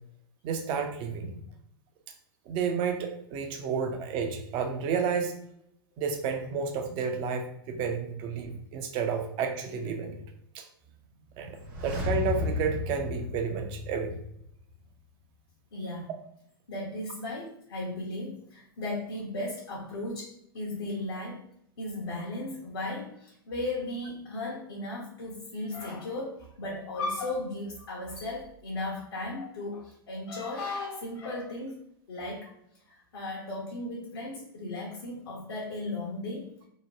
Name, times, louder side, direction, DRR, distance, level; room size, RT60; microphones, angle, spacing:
voice 1, 0.4-1.4 2.5-5.3 6.0-10.1 10.5-10.6 11.4-14.2, right 6 dB, 40° right, 5 dB, 0.5 m, -31 dB
sound 1, 11.5-14.4 14.7-14.8, left 3 dB, 60° right, 1.1 m, -33 dB
voice 2, 15.7-16.1 16.7-20.3 20.5-21.4 21.8-31.8 32.1-32.5 32.9-36.5, left 2 dB, 70° left, -5 dB, 0.9 m, -36 dB
2.8 x 2.1 x 2.9 m, 0.72 s
hypercardioid pair, 105°, 13 cm